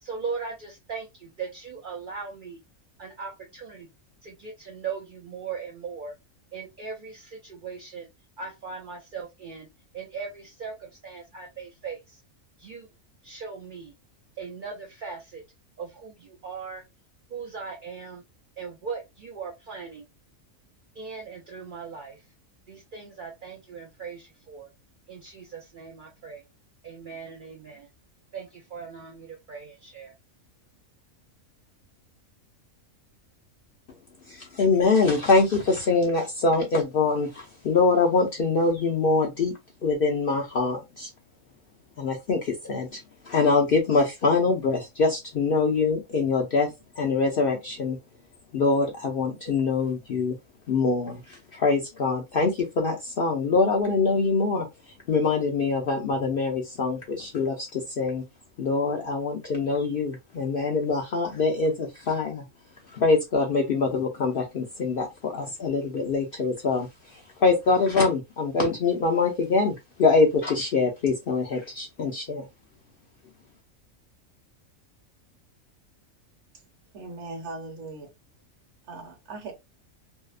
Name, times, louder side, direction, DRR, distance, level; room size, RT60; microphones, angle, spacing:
voice 1, 0.0-2.6 3.0-3.9 4.2-6.1 6.5-8.1 8.4-9.7 9.9-12.2 12.6-12.9 13.2-13.9 14.4-15.4 15.8-16.8 17.3-18.2 18.6-20.0 21.0-22.2 22.7-24.7 25.1-26.4 26.8-27.9 28.3-30.1, right 5 dB, 75° right, 0.4 m, -39 dB
voice 2, 34.3-41.1 42.0-43.0 43.3-46.7 47.0-48.0 48.5-50.4 50.7-54.7 55.1-58.2 58.6-62.4 62.9-72.4, left 4 dB, 65° left, 0.6 m, -24 dB
voice 3, 76.9-78.1 78.9-79.5, right 3 dB, 60° right, 1.0 m, -39 dB
2.7 x 2.0 x 2.3 m
omnidirectional pair, 1.4 m